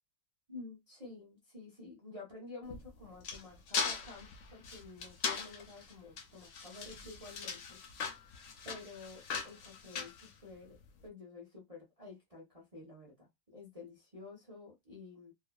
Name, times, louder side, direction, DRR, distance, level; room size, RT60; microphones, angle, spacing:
voice 1, 0.5-7.8 8.6-10.8 11.0-15.3, left 3 dB, 30° right, 0.7 m, -51 dB
sound 1, 2.6-10.9, left 5 dB, 65° left, 0.7 m, -40 dB
2.7 x 2.2 x 2.3 m
omnidirectional pair, 1.8 m